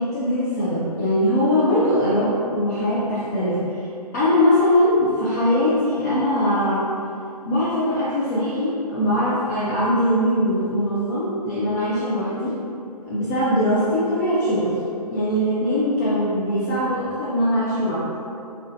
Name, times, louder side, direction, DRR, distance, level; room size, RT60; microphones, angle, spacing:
voice 1, 0.0-3.9 4.1-6.9 7.5-12.5 13.1-14.8 15.1-18.1, left 1 dB, 25° left, -9 dB, 0.4 m, -21 dB
3.2 x 2.4 x 2.5 m, 2.6 s
figure-of-eight pair, 130°, 21 cm